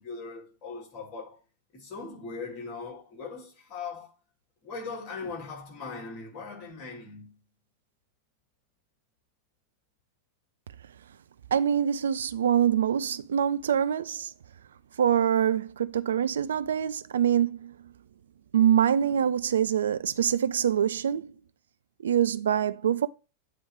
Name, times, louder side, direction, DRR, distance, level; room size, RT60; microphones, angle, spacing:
voice 1, 0.0-1.4 1.7-4.1 4.6-7.4 19.0-19.3, left 4 dB, 40° left, 3.0 m, -40 dB
voice 2, 11.5-14.3 15.0-17.7 18.5-21.3 22.0-23.1, right 9 dB, 65° right, 0.4 m, -25 dB
8.7 x 3.2 x 4.9 m
figure-of-eight pair, 90°, 0 cm